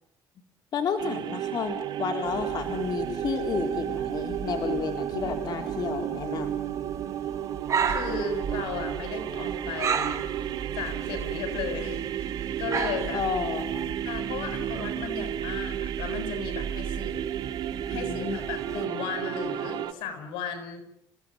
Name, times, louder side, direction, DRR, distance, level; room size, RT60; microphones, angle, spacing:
voice 1, 0.7-6.6 13.1-14.0 17.9-18.4, left 6 dB, 55° left, 5 dB, 4.1 m, -31 dB
sound 1, 1.0-19.9, right 10 dB, 60° right, 3.0 m, -33 dB
sound 2, 2.3-18.9, right 7 dB, 35° right, 3.6 m, -36 dB
voice 2, 7.8-10.2 10.7-13.3 14.0-17.3 17.9-20.8, left 5 dB, 90° left, 8 dB, 7.4 m, -35 dB
30.0 x 16.5 x 9.9 m, 0.79 s
cardioid pair, 115°, 8 cm